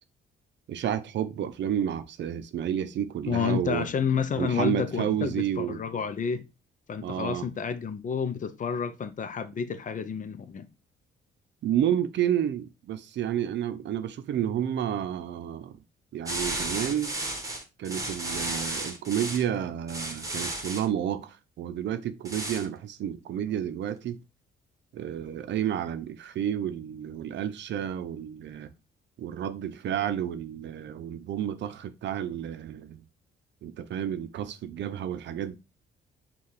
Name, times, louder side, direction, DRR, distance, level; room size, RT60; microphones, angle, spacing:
voice 1, 0.7-3.9 4.4-5.8 7.0-7.5 11.6-15.8 16.1-17.2 17.8-24.2 24.9-28.7 29.2-33.0 33.6-35.5, right 10 dB, 65° right, 0.6 m, -30 dB
voice 2, 3.3-6.4 6.9-10.7, left 6 dB, 40° left, 0.5 m, -30 dB
sound 1, 16.3-19.4 19.9-20.9 22.2-22.7, right 1 dB, 15° right, 1.2 m, -33 dB
5.5 x 2.4 x 3.2 m
cardioid pair, 90°, 20 cm